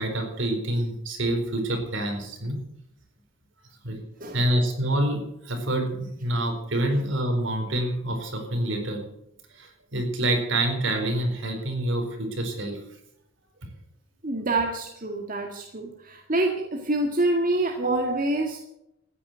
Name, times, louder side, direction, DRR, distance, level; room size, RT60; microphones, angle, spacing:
voice 1, 0.0-2.6 3.8-4.0 4.3-9.0 9.5-12.8, right 1 dB, 65° right, 3 dB, 4.5 m, -27 dB
voice 2, 14.2-18.6, right 2 dB, 45° right, 1 dB, 2.0 m, -26 dB
14.5 x 10.0 x 8.0 m, 0.81 s
head